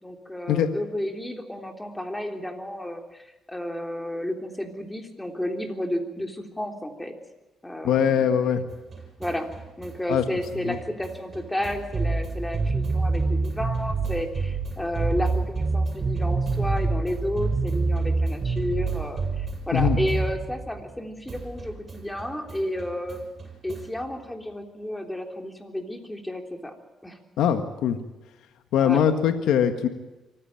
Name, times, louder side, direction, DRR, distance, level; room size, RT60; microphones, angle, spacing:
voice 1, 0.0-7.2 7.6-8.3 9.2-9.5 9.8-23.2 23.6-26.7 27.0-27.2 28.8-29.0, left 1 dB, 10° left, 4 dB, 3.5 m, -32 dB
voice 2, 7.8-8.6 10.1-10.2 10.7-10.8 19.7-20.0 27.4-28.0 28.7-29.9, left 9 dB, 85° left, 8 dB, 1.6 m, -21 dB
sound 1, 8.7-21.0 21.3-24.0, right 3 dB, 45° right, 7.2 m, -28 dB
24.5 x 15.5 x 9.0 m, 1.1 s
cardioid pair, 90°, 0 cm